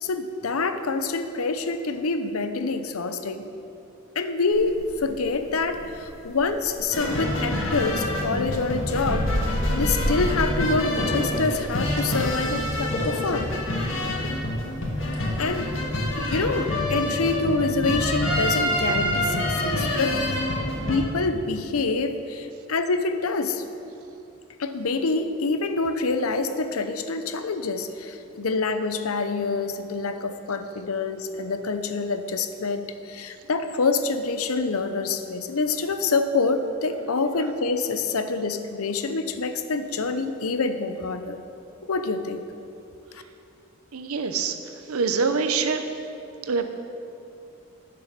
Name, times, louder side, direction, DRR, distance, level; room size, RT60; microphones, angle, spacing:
voice 1, 0.0-3.5 4.2-13.5 15.4-15.7 16.2-20.2 20.9-23.6 24.6-41.4 41.9-42.4, left 3 dB, 85° left, 9 dB, 0.7 m, -26 dB
sound 1, 4.5-16.6, equal, 30° left, 2.1 m, -33 dB
sound 2, 6.9-21.0, left 1 dB, 65° left, 1.8 m, -27 dB
voice 2, 43.9-44.6 44.9-45.9 46.5-46.7, right 5 dB, 90° right, 8 dB, 0.8 m, -24 dB
10.5 x 7.0 x 6.6 m, 2.8 s
head